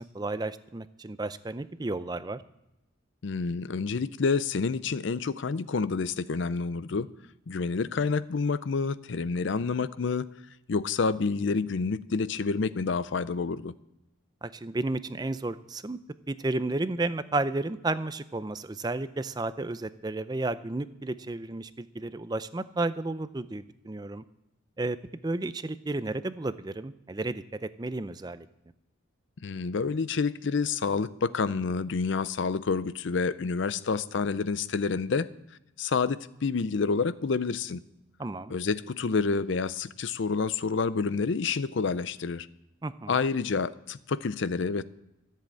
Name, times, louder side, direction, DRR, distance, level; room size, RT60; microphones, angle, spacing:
voice 1, 0.0-2.4 14.4-16.0 16.3-24.2 24.8-25.0 25.2-27.4 27.8-28.5 38.2-38.5 42.8-43.2, right 2 dB, 20° right, 13 dB, 0.4 m, -32 dB
voice 2, 3.2-7.1 7.5-10.3 10.7-13.7 29.4-35.3 35.8-37.8 38.5-42.5 43.1-44.8, left 4 dB, 65° left, 16 dB, 0.5 m, -28 dB
14.0 x 7.6 x 8.4 m, 0.92 s
head